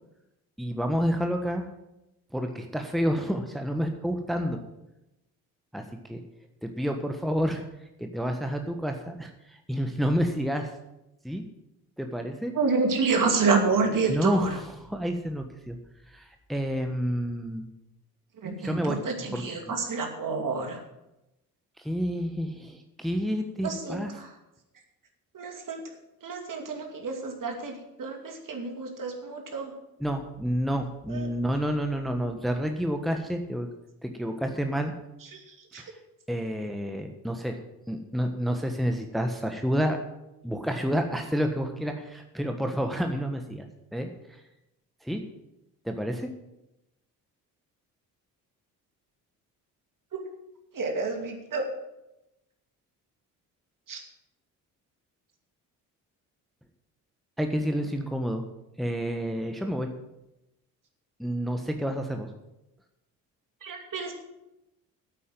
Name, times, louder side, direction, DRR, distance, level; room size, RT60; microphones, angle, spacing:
voice 1, 0.6-1.7 2.3-4.6 5.7-5.8 6.1-6.2 6.6-7.6 8.0-10.7 11.2-11.4 12.0-12.5 14.1-14.6 14.9-15.8 16.1-17.7 18.6-19.0 19.3-19.7 21.8-24.1 30.0-33.7 34.0-34.9 35.8-35.9 36.3-37.6 37.9-40.0 40.4-43.7 43.9-44.4 45.0-45.2 45.8-46.3 57.4-58.4 58.8-59.9 61.2-62.3, equal, ahead, 5 dB, 1.4 m, -29 dB
voice 2, 12.5-14.6 18.4-20.8 23.6-24.3 25.3-25.8 26.2-29.7 31.1-31.3 35.3-35.8 50.1-50.2 50.7-51.7 53.9-54.0 63.6-64.1, right 4 dB, 45° right, 3 dB, 2.6 m, -29 dB
9.2 x 8.5 x 7.7 m, 0.93 s
hypercardioid pair, 50°, 44 cm